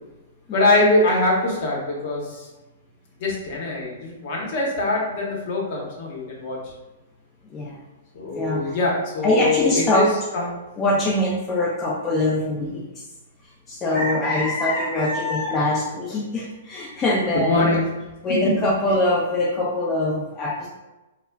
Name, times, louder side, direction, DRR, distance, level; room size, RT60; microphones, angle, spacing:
voice 1, 0.5-2.5 3.2-6.6 8.1-10.1 10.3-10.6 14.1-14.3 17.5-17.8, left 2 dB, 50° left, -3 dB, 0.8 m, -23 dB
voice 2, 8.3-8.8 9.2-10.0 10.8-13.0 13.7-17.6 18.2-20.7, left 1 dB, 25° left, -5 dB, 0.5 m, -23 dB
2.1 x 2.1 x 3.4 m, 1.1 s
hypercardioid pair, 120°, 0 cm